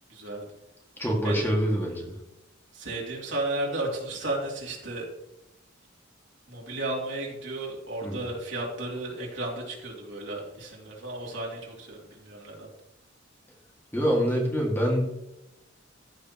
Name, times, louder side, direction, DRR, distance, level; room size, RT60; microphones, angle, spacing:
voice 1, 0.1-0.5 1.2-1.5 2.7-5.1 6.5-12.7, right 2 dB, 65° right, -3 dB, 3.1 m, -34 dB
voice 2, 1.0-2.1 8.0-8.2 13.9-15.0, equal, 10° left, -2 dB, 2.2 m, -25 dB
15.0 x 6.7 x 3.1 m, 0.89 s
head